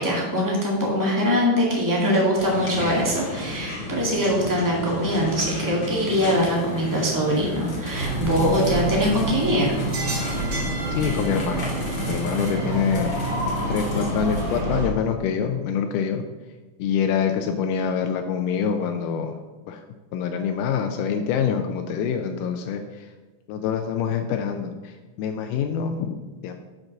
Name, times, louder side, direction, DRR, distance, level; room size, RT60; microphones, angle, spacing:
voice 1, 0.0-9.7, equal, 10° right, -4 dB, 1.3 m, -22 dB
sound 1, 2.4-14.6, left 2 dB, 40° left, 2.2 m, -33 dB
sound 2, 7.9-14.9, right 2 dB, 65° right, 3.8 m, -27 dB
voice 2, 10.9-11.8 12.1-13.4 13.7-16.2 16.8-19.4 19.7-19.8 20.1-23.1 23.5-26.6, left 7 dB, 90° left, 5 dB, 2.2 m, -26 dB
7.2 x 5.3 x 6.2 m, 1.2 s
omnidirectional pair, 3.6 m